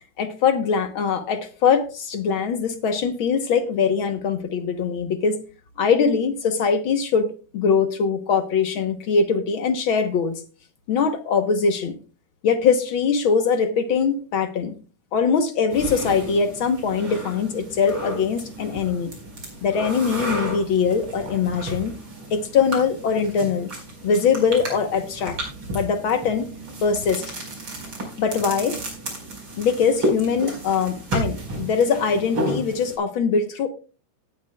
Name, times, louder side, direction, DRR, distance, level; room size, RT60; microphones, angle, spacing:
voice 1, 0.2-5.4 5.8-10.4 10.9-12.0 12.4-14.8 15.1-19.1 19.6-22.0 22.3-23.7 24.0-25.4 25.7-26.5 26.8-27.2 28.2-28.8 29.6-33.7, left 6 dB, 65° left, 7 dB, 1.3 m, -22 dB
sound 1, 15.7-33.0, right 1 dB, 40° right, 5.4 m, -32 dB
17.5 x 10.0 x 2.3 m, 0.35 s
omnidirectional pair, 3.6 m